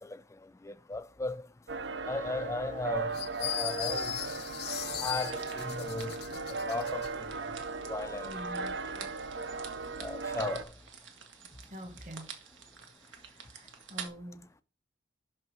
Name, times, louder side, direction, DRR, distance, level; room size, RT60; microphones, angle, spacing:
voice 1, 0.6-1.4 2.1-4.1 5.0-6.1 6.6-7.3 7.9-8.3 10.0-10.7, left 2 dB, 15° left, 0.4 m, -36 dB
sound 1, 1.7-10.6, right 4 dB, 65° right, 0.6 m, -37 dB
sound 2, 3.1-7.1, left 12 dB, 55° left, 0.6 m, -38 dB
sound 3, 5.2-14.1, right 6 dB, 85° right, 1.5 m, -49 dB
voice 2, 8.2-8.8 11.7-12.3 13.0-14.5, equal, 40° right, 1.5 m, -46 dB
6.1 x 5.4 x 5.5 m
head